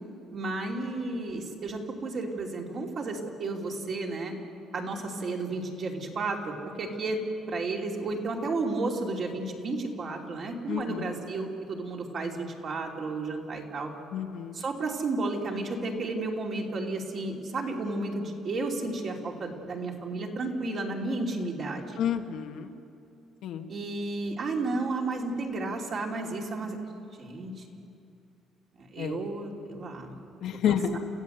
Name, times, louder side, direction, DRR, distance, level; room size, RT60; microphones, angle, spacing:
voice 1, 0.3-4.3 4.7-7.2 7.5-13.9 14.5-22.0 23.7-26.8 27.2-27.6 28.8-30.3, right 3 dB, 40° right, 0 dB, 2.8 m, -32 dB
voice 2, 10.7-11.1 14.1-14.6 22.0-22.8 23.4-23.7 29.0-29.2 30.4-31.0, left 9 dB, 60° left, 5 dB, 1.4 m, -30 dB
29.0 x 15.5 x 8.0 m, 2.6 s
cardioid pair, 150°, 0 cm